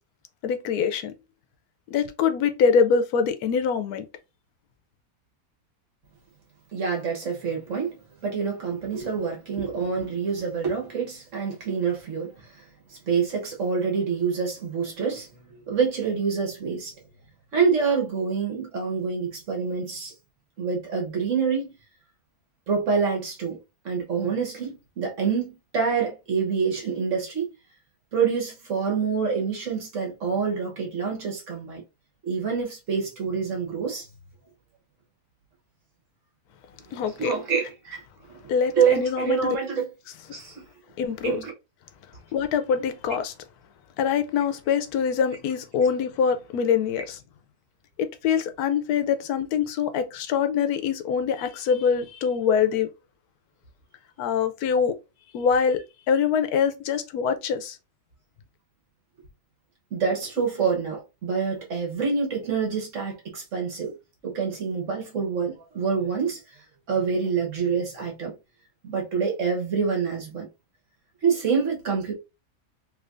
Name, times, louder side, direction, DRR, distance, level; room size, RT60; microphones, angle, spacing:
voice 1, 0.4-1.1 1.9-4.1 36.9-37.3 38.5-39.6 41.0-41.4 42.3-43.3 44.0-47.2 48.0-52.9 54.2-54.9 55.3-55.8 56.1-57.8, left 6 dB, 90° left, 1.1 m, -24 dB
voice 2, 6.7-8.0 8.2-12.6 12.9-15.3 15.5-16.9 17.5-20.1 20.6-21.7 22.7-23.6 23.8-27.5 28.1-31.8 32.2-34.1 36.9-38.0 38.7-39.9 40.3-40.6 41.2-41.5 59.9-63.9 64.2-66.4 66.9-68.3 68.8-70.5 71.2-72.1, right 6 dB, 55° right, 1.4 m, -26 dB
3.3 x 3.2 x 2.5 m
omnidirectional pair, 1.6 m